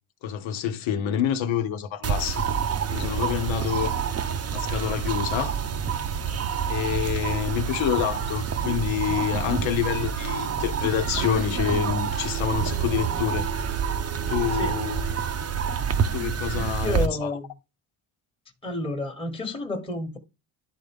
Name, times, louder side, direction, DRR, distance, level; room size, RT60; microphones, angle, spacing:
voice 1, 0.2-2.4 2.9-4.3 4.5-5.6 6.7-13.5 14.3-15.0 16.1-17.3, left 9 dB, 70° left, 1.2 m, -27 dB
sound 1, 2.0-17.1, right 7 dB, 30° right, 0.7 m, -27 dB
voice 2, 14.5-14.8 16.5-17.5 18.6-20.2, left 2 dB, 10° left, 1.3 m, -31 dB
11.0 x 3.9 x 3.5 m
cardioid pair, 110°, 48 cm